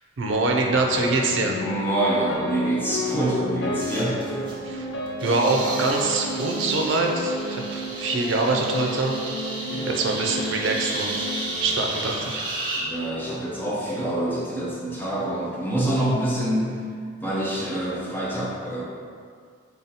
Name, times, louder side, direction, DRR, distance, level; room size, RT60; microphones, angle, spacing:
voice 1, 0.2-1.6 4.6-4.9 5.2-9.2 9.9-11.3 11.6-12.4, right 2 dB, 80° right, 1 dB, 0.5 m, -24 dB
sound 1, 0.6-12.9, left 1 dB, 75° left, 0.5 m, -33 dB
voice 2, 1.6-4.3 9.7-10.0 12.7-16.8 17.2-18.8, right 1 dB, 10° left, -6 dB, 0.6 m, -26 dB
sound 2, 3.1-3.2 3.8-4.6 5.1-12.8, right 2 dB, 25° right, 0.7 m, -33 dB
3.4 x 2.9 x 4.0 m, 2.1 s
head